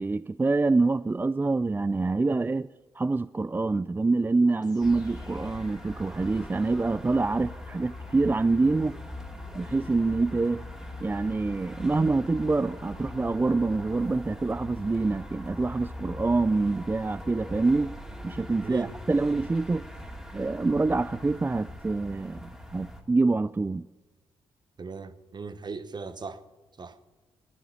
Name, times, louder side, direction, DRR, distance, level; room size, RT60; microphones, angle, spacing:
voice 1, 0.0-2.7 3.0-9.0 9.5-10.6 11.0-17.9 18.2-19.9 20.3-23.9, right 3 dB, 20° right, 0.3 m, -26 dB
sound 1, 4.6-14.5, left 3 dB, 35° left, 2.2 m, -53 dB
sound 2, 4.8-23.0, left 1 dB, 5° right, 2.5 m, -41 dB
voice 2, 18.6-19.0 24.8-26.4 26.8-27.0, right 4 dB, 40° right, 1.1 m, -38 dB
11.0 x 9.9 x 10.0 m
hypercardioid pair, 45°, 11 cm